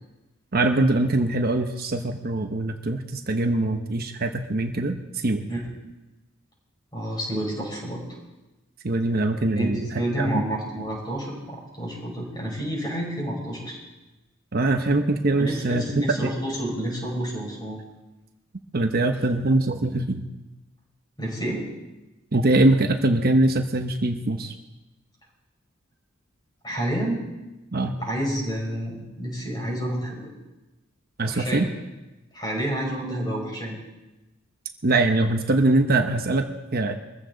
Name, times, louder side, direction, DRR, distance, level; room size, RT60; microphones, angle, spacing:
voice 1, 0.5-5.0 5.2-5.4 8.8-9.9 10.2-10.4 14.5-16.3 18.7-20.3 22.3-24.5 27.7-28.0 31.2-31.7 34.8-36.9, right 2 dB, 50° right, 5 dB, 1.0 m, -22 dB
voice 2, 5.5-5.9 6.9-8.0 9.6-13.8 15.4-17.8 21.2-21.7 26.6-27.2 28.0-30.3 31.3-31.7 32.3-33.8, right 1 dB, 20° left, -2 dB, 5.7 m, -29 dB
22.5 x 15.0 x 4.0 m, 1.0 s
head